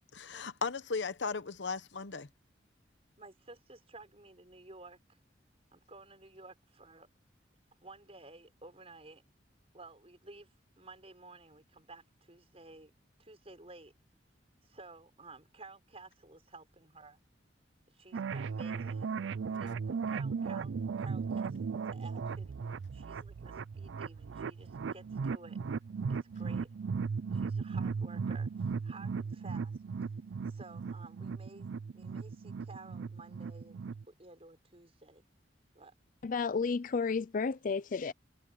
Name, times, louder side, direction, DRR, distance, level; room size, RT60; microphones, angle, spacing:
voice 1, 0.1-2.3, left 4 dB, 80° left, 1.0 m, -36 dB
voice 2, 3.2-5.2 5.7-7.1 7.8-9.2 9.7-10.5 10.8-12.9 13.2-13.9 14.6-17.2 17.9-19.2 19.5-22.6 22.9-25.6 26.1-26.7 27.3-28.5 28.8-29.8 30.5-33.8 34.1-35.2 35.7-35.9, right 3 dB, 35° right, 5.6 m, -53 dB
sound 1, 18.1-34.0, right 5 dB, 90° right, 0.4 m, -37 dB
voice 3, 36.2-38.1, left 5 dB, 45° left, 0.4 m, -32 dB
head